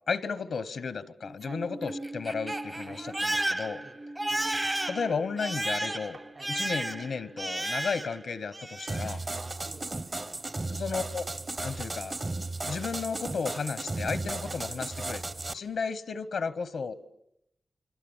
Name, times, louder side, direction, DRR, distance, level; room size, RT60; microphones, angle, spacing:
voice 1, 0.1-3.8 4.9-6.2 6.5-9.2 10.7-11.2 11.6-12.2 12.6-15.2 15.5-16.9, left 5 dB, 85° left, 15 dB, 0.9 m, -33 dB
Crying sobbing, 1.2-8.2 8.5-9.2, right 1 dB, 25° right, 0.9 m, -33 dB
sound 1, 6.1-6.4 7.6-7.7 8.1-8.2 9.4-10.0 10.9-11.0 12.7-13.1, right 3 dB, 80° right, 2.8 m, -52 dB
sound 2, 8.9-15.5, right 2 dB, 45° right, 1.2 m, -35 dB
voice 2, 9.4-10.8 14.4-14.6, right 3 dB, 65° right, 4 dB, 4.5 m, -50 dB
27.0 x 25.5 x 7.2 m, 0.82 s
cardioid pair, 50°, 0 cm